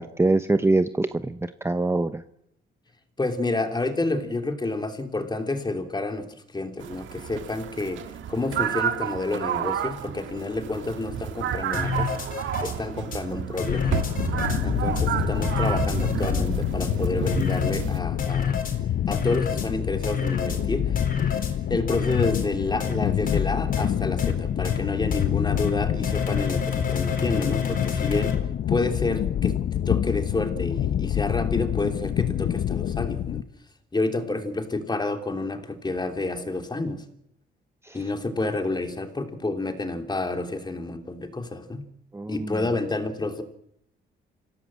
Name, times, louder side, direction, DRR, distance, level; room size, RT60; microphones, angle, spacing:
voice 1, 0.0-2.2 37.8-38.0 42.1-42.6, right 2 dB, 15° right, 10 dB, 0.9 m, -24 dB
voice 2, 3.2-12.1 12.6-14.0 14.6-18.6 19.1-21.0 21.7-28.4 28.7-33.4 33.9-37.0 37.9-41.8 42.3-43.4, left 2 dB, 20° left, 5 dB, 3.2 m, -29 dB
sound 1, 6.8-18.0, right 9 dB, 75° right, 1.7 m, -30 dB
sound 2, 11.7-12.7 13.1-13.2 13.6-14.6 15.0-15.1 15.4-16.4 16.8-16.9 17.3-17.8 18.2-18.7 19.1-19.7 20.0-20.6 21.0-21.5 21.9-22.4 22.8-22.9 23.3-23.4 23.7-23.9 24.2-24.3 24.6-24.8 25.1-25.2 25.6-25.7 26.0-28.3, left 6 dB, 45° left, 4.4 m, -29 dB
sound 3, 13.7-33.4, left 10 dB, 60° left, 0.9 m, -27 dB
26.0 x 17.0 x 7.7 m, 0.76 s
cardioid pair, 90°, 20 cm